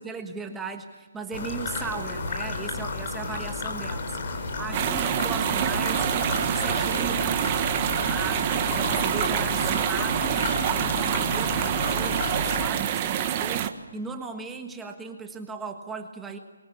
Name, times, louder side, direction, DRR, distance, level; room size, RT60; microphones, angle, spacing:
voice 1, 0.0-7.5 8.0-16.4, right 4 dB, 5° right, 4 dB, 1.5 m, -37 dB
sound 1, 1.3-12.7, left 3 dB, 40° left, 4.7 m, -32 dB
sound 2, 4.7-13.7, right 10 dB, 25° right, 1.4 m, -26 dB
25.5 x 23.0 x 8.6 m, 1.3 s
hypercardioid pair, 160°, 0 cm